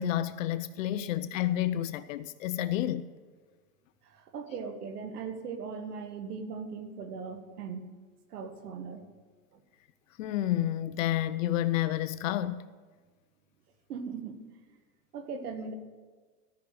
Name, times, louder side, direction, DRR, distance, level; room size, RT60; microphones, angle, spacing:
voice 1, 0.0-3.1 10.2-12.7, left 12 dB, 60° left, 0.6 m, -30 dB
voice 2, 4.1-7.8 8.3-9.0 13.9-14.4 15.1-15.7, right 5 dB, 85° right, 1.7 m, -39 dB
13.0 x 6.0 x 7.8 m
supercardioid pair, 155°, 45 cm